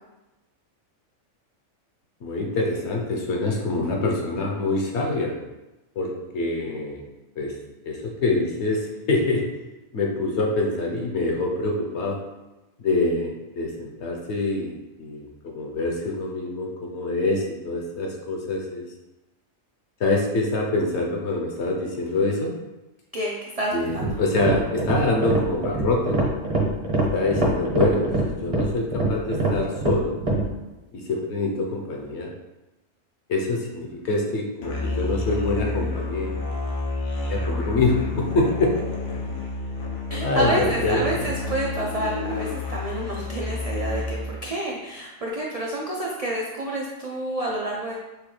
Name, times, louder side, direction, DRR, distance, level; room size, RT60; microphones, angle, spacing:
voice 1, 2.2-5.4 6.0-7.1 7.4-7.5 7.8-9.5 9.9-12.2 12.8-18.9 20.0-22.5 23.7-26.4 27.1-30.2 30.9-32.3 33.3-36.4 37.3-38.8 39.8-39.9 40.2-41.3, left 2 dB, 60° left, 0 dB, 0.9 m, -25 dB
voice 2, 23.1-24.2 40.1-47.9, right 1 dB, 80° right, -3 dB, 0.3 m, -29 dB
sound 1, 23.9-30.5, right 2 dB, 35° right, 0.6 m, -24 dB
Musical instrument, 34.6-44.4, left 3 dB, 85° left, 1.2 m, -30 dB
6.3 x 2.2 x 3.1 m, 1.0 s
omnidirectional pair, 1.4 m